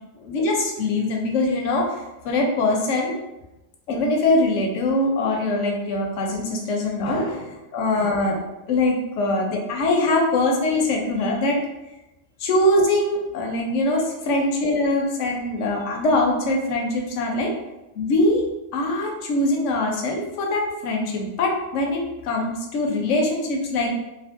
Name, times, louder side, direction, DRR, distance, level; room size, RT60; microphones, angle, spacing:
voice 1, 0.2-2.0 2.2-3.1 3.9-8.4 8.7-11.6 12.4-17.5 17.9-18.5 18.7-24.0, left 2 dB, 80° left, 0 dB, 0.9 m, -22 dB
2.7 x 2.5 x 2.4 m, 0.97 s
omnidirectional pair, 1.3 m